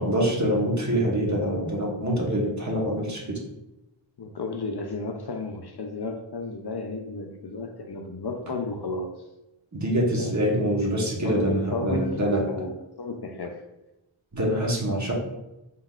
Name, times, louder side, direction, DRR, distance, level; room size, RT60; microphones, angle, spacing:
voice 1, 0.0-3.4 9.7-12.4 14.3-15.1, right 1 dB, 35° right, -2 dB, 1.2 m, -25 dB
voice 2, 4.2-9.1 10.1-10.5 11.2-13.6, left 3 dB, 55° left, 4 dB, 0.6 m, -33 dB
5.3 x 3.8 x 2.4 m, 0.95 s
wide cardioid pair, 50°, 49 cm